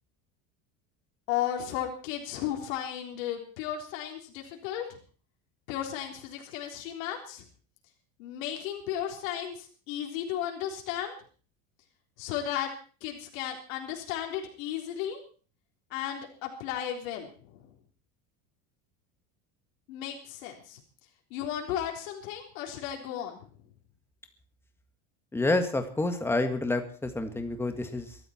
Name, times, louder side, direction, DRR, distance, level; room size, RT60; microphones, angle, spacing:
voice 1, 1.3-5.0 5.7-7.4 8.2-11.2 12.2-12.7 13.0-15.2 15.9-17.7 19.9-20.8 21.3-23.5, left 10 dB, 80° left, 2 dB, 3.8 m, -34 dB
voice 2, 25.3-28.2, left 2 dB, 5° left, 6 dB, 1.8 m, -28 dB
22.5 x 13.5 x 4.5 m, 0.40 s
cardioid pair, 170°, 39 cm